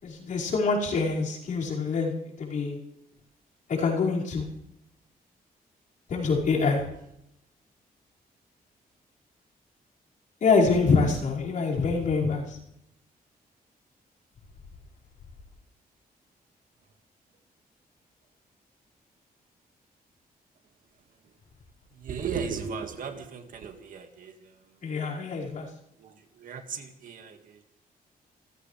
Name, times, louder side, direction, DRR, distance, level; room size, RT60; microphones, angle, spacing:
voice 1, 0.0-2.8 3.7-4.5 6.1-6.8 10.4-12.6 24.8-25.7, left 4 dB, 55° left, -4 dB, 5.3 m, -25 dB
voice 2, 21.9-24.8 26.0-27.6, right 6 dB, 60° right, 5 dB, 1.9 m, -37 dB
28.0 x 15.0 x 3.3 m, 0.81 s
wide cardioid pair, 170°, 16 cm